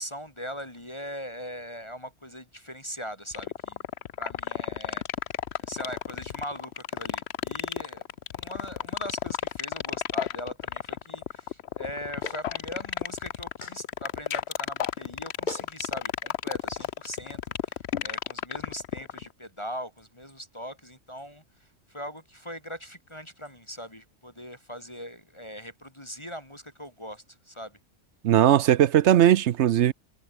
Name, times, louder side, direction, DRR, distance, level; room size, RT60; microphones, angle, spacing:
voice 1, 0.0-3.8 4.2-5.0 5.6-8.1 8.3-27.8, equal, 20° left, 3.4 m, -40 dB
sound 1, 3.3-19.3, left 10 dB, 65° left, 0.9 m, -31 dB
Clapping, 12.2-12.5 13.6-13.8 15.0-15.1 15.5-15.7 16.8-16.9, left 2 dB, 40° left, 2.8 m, -36 dB
voice 2, 28.2-29.9, right 11 dB, 70° right, 0.9 m, -19 dB
omnidirectional pair, 1.3 m